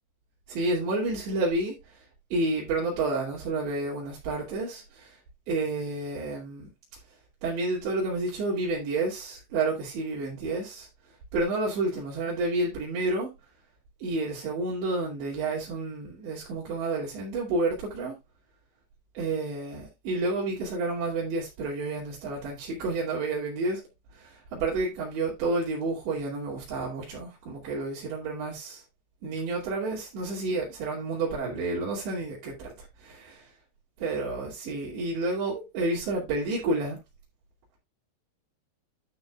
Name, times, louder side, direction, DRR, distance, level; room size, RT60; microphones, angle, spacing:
voice 1, 0.5-1.8 2.3-5.2 5.5-6.7 7.4-10.9 11.3-13.3 14.0-18.2 19.1-23.8 24.1-28.8 29.2-33.5 34.0-37.0, right 2 dB, 90° right, 5.0 m, -30 dB
12.0 x 7.0 x 2.3 m
omnidirectional pair, 4.9 m